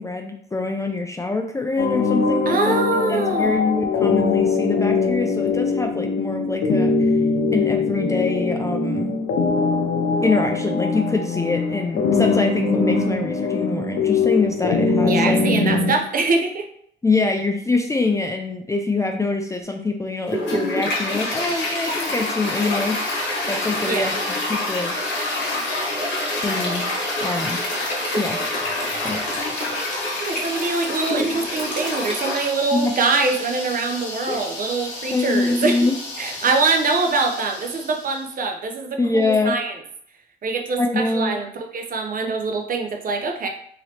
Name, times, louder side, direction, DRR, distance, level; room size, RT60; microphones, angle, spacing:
voice 1, 0.0-2.7 3.1-7.2 7.5-9.2 10.2-15.9 17.0-24.9 26.4-26.9 27.2-27.6 28.2-28.4 29.0-29.2 32.7-32.9 34.3-34.4 35.1-35.9 39.0-39.5 40.8-41.4, left 3 dB, 15° left, 3 dB, 0.4 m, -24 dB
sound 1, 1.8-16.0, left 4 dB, 85° left, 0.5 m, -22 dB
voice 2, 2.5-3.6 15.0-16.7 23.9-24.1 30.2-35.8 36.2-39.7 40.4-43.5, right 3 dB, 45° right, 3 dB, 0.6 m, -23 dB
Toilet flush, 20.3-38.2, left 1 dB, 60° left, 1.1 m, -27 dB
3.0 x 2.9 x 2.8 m, 0.66 s
cardioid pair, 90°, 20 cm